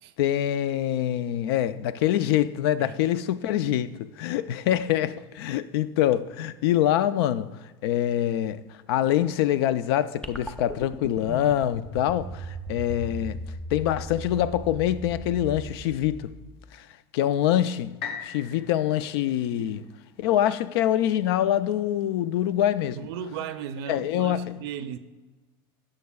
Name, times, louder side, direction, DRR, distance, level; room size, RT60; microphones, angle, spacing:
voice 1, 0.2-7.5 7.8-8.6 8.9-13.4 13.7-16.3 16.7-16.9 17.1-19.8 20.2-23.0 23.9-24.5, left 11 dB, 75° left, 0.5 m, -25 dB
sound 1, 10.2-16.7, right 1 dB, 5° left, 0.6 m, -38 dB
sound 2, 18.0-21.9 22.5-22.6, left 7 dB, 55° left, 1.6 m, -42 dB
voice 2, 19.6-19.9 23.0-25.0, right 8 dB, 80° right, 0.6 m, -36 dB
16.0 x 6.5 x 2.3 m
supercardioid pair, 135°, 13 cm